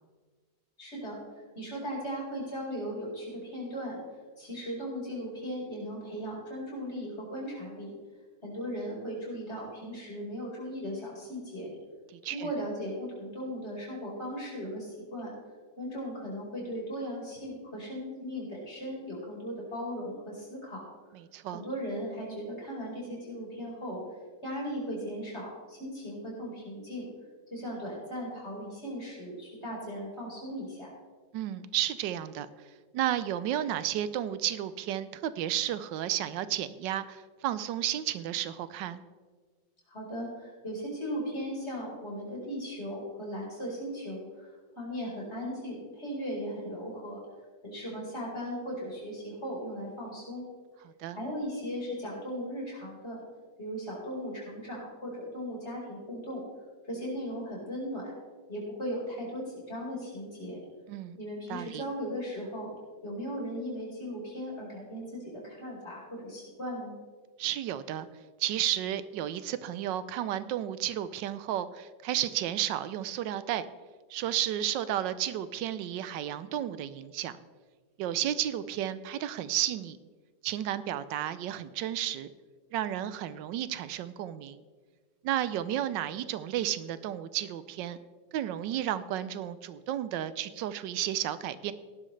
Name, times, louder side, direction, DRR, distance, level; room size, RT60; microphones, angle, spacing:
voice 1, 0.8-1.2 1.5-4.0 4.4-7.9 8.4-11.7 12.3-15.3 15.8-20.8 21.5-27.1 27.5-30.9 39.9-47.2 47.6-50.4 51.1-53.2 53.6-56.4 56.9-58.1 58.5-60.6 61.2-62.7 63.0-66.9, equal, 35° left, -4 dB, 4.9 m, -37 dB
voice 2, 12.1-12.5 21.3-21.6 31.3-32.5 32.9-39.0 50.8-51.2 60.9-61.2 61.5-61.8 67.4-68.1 68.4-73.7 74.1-77.4 78.0-80.0 80.4-82.3 82.7-84.6 85.2-88.0 88.3-91.7, right 11 dB, 90° right, 14 dB, 1.3 m, -32 dB
17.0 x 11.5 x 3.2 m, 1.4 s
omnidirectional pair, 1.9 m